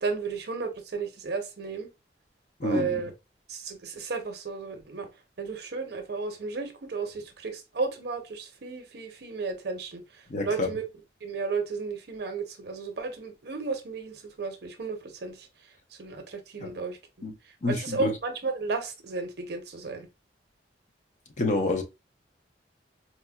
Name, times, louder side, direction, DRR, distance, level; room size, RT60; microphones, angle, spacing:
voice 1, 0.0-1.9 2.6-3.1 3.5-5.1 5.4-10.0 10.4-10.8 11.2-15.5 16.0-17.0 17.7-20.1, right 4 dB, 65° right, 0.7 m, -33 dB
voice 2, 2.6-2.9 10.3-10.7 16.6-16.7 17.2-17.3 17.6-18.1 21.4-21.8, left 2 dB, 45° left, 0.6 m, -27 dB
4.2 x 2.1 x 2.2 m
head